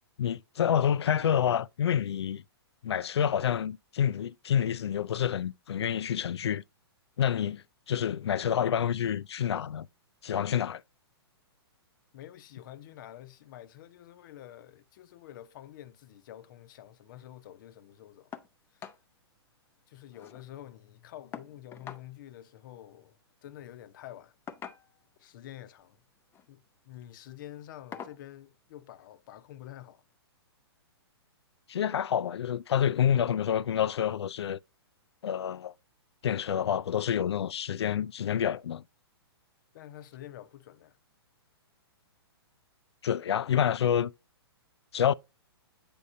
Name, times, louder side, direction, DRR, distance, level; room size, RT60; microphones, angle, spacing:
voice 1, 0.2-2.4 2.8-6.6 7.2-9.9 10.2-10.8 31.7-34.6 35.2-35.7 36.2-38.8 43.0-44.1 44.9-45.1, left 9 dB, 75° left, 0.4 m, -28 dB
voice 2, 12.1-18.3 18.7-18.8 19.9-24.3 25.2-26.0 26.5-30.0 39.7-41.0, left 12 dB, 50° left, 0.7 m, -48 dB
sound 1, 18.3-18.5 18.8-19.0 19.4-19.5 19.8-20.5 21.3-22.1 23.3-23.5 24.5-25.1 26.2-26.5 26.9-27.1 27.9-28.2 29.5-29.6 30.1-30.2, left 8 dB, 15° left, 0.5 m, -45 dB
8.6 x 5.4 x 2.6 m
hypercardioid pair, 130°, 14 cm